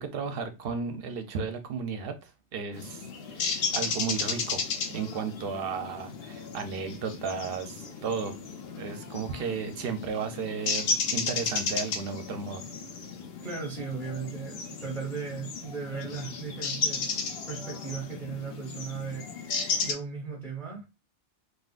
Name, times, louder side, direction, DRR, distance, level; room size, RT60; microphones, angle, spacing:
voice 1, 0.0-4.6 4.9-8.3 8.8-12.6, right 5 dB, 60° right, 0.7 m, -34 dB
sound 1, 2.7-19.9, left 5 dB, 65° left, 0.7 m, -34 dB
voice 2, 13.4-17.2 17.5-20.9, right 5 dB, ahead, 0.8 m, -37 dB
3.7 x 2.3 x 2.4 m
omnidirectional pair, 1.2 m